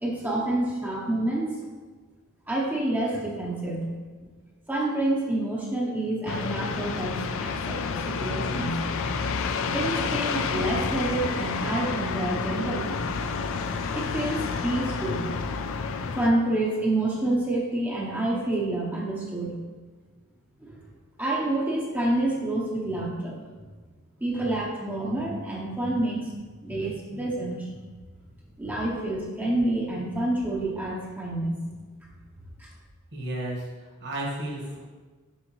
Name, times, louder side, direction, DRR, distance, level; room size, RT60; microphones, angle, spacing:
voice 1, 0.0-1.6 2.5-3.9 4.7-8.8 9.7-13.1 13.9-15.3 16.2-19.6 20.6-20.8 21.2-23.4 24.2-27.7 28.6-31.6 32.6-32.7, right 1 dB, 10° right, -4 dB, 0.7 m, -28 dB
sound 1, 6.3-16.3, left 5 dB, 65° left, 0.4 m, -29 dB
voice 2, 33.1-33.6 34.0-34.8, right 1 dB, 55° right, -3 dB, 1.5 m, -32 dB
6.4 x 5.0 x 3.0 m, 1.4 s
head